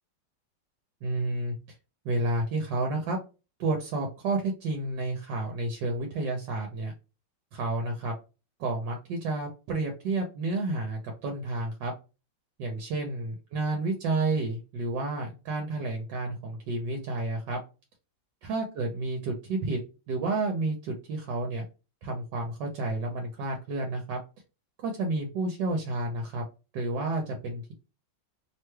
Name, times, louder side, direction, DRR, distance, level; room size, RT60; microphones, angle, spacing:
voice 1, 1.0-1.5 2.0-3.2 3.6-6.9 7.5-8.1 8.6-11.9 12.6-17.6 18.4-19.8 20.1-21.6 22.0-24.2 24.8-26.4 26.7-27.7, right 2 dB, 80° right, 2 dB, 1.3 m, -30 dB
3.1 x 2.2 x 3.0 m, 0.30 s
omnidirectional pair, 2.0 m